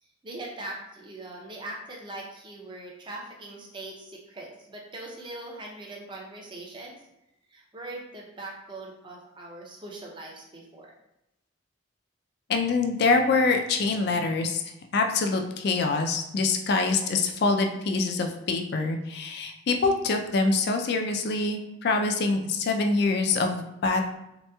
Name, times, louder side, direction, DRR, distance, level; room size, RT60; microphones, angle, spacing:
voice 1, 0.0-7.0 7.5-10.9, right 2 dB, 20° right, -1 dB, 0.5 m, -41 dB
voice 2, 12.5-14.6 14.9-24.0, left 3 dB, 50° left, 4 dB, 0.3 m, -25 dB
3.2 x 2.9 x 2.2 m, 0.87 s
head